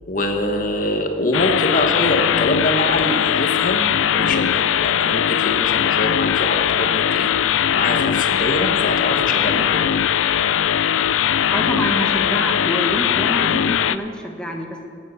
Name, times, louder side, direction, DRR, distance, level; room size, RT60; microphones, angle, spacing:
voice 1, 0.1-9.8, left 1 dB, 45° left, 4 dB, 1.1 m, -24 dB
sound 1, 1.3-14.0, left 9 dB, 85° left, 0.4 m, -20 dB
voice 2, 11.5-14.9, equal, 5° left, 1 dB, 1.2 m, -26 dB
14.5 x 8.5 x 8.1 m, 2.3 s
head